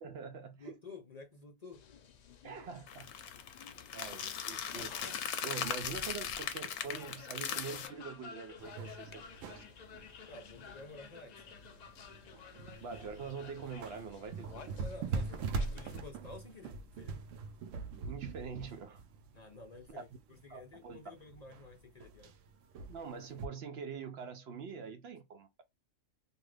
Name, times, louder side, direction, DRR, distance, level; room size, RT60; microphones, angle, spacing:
voice 1, 0.0-0.8 2.4-3.1 3.9-9.2 9.5-9.6 12.6-14.7 18.0-19.0 19.9-20.0 20.5-21.2 22.9-25.6, right 5 dB, 65° right, 0.7 m, -45 dB
voice 2, 0.6-1.9 10.3-11.4 14.8-17.2 19.3-22.3, left 3 dB, 40° left, 0.6 m, -51 dB
sound 1, 1.7-16.0, left 6 dB, 90° left, 0.3 m, -53 dB
sound 2, 2.9-7.9, left 8 dB, 70° left, 0.9 m, -39 dB
sound 3, 8.6-23.5, right 4 dB, 90° right, 1.0 m, -43 dB
2.7 x 2.5 x 3.2 m
omnidirectional pair, 1.3 m